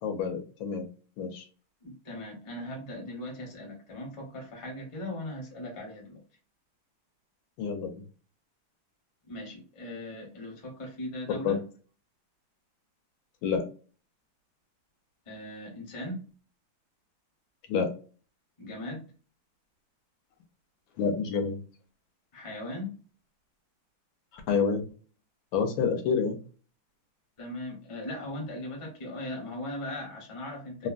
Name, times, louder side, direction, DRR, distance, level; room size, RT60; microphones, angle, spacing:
voice 1, 0.0-0.8 1.2-1.4 7.6-7.9 11.4-11.6 13.4-13.6 17.7-17.9 21.0-21.6 24.3-24.8 25.5-26.4 30.8-30.9, left 6 dB, 75° left, 1.4 m, -28 dB
voice 2, 1.8-6.2 9.3-11.6 15.3-16.3 18.6-19.1 22.3-23.0 27.4-30.9, left 1 dB, 25° left, 0.6 m, -39 dB
3.4 x 2.1 x 2.4 m
omnidirectional pair, 2.2 m